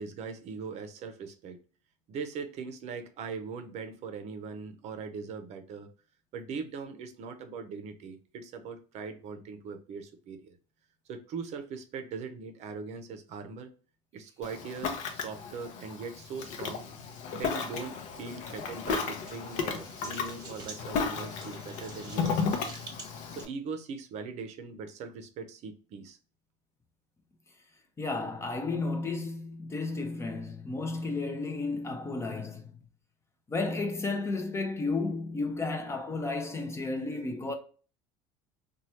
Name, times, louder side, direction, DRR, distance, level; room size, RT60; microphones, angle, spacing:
voice 1, 0.0-1.6 2.1-5.9 6.3-10.6 11.1-13.7 14.1-16.9 17.2-22.8 23.3-26.2, right 5 dB, 50° right, 0.6 m, -40 dB
Ocean, 14.4-23.4, left 5 dB, 60° left, 0.7 m, -34 dB
sound 1, 19.0-23.5, right 3 dB, 30° right, 0.9 m, -49 dB
voice 2, 28.0-32.7 33.5-37.5, left 3 dB, 20° left, 0.5 m, -33 dB
3.0 x 2.3 x 2.8 m
supercardioid pair, 115°, 14 cm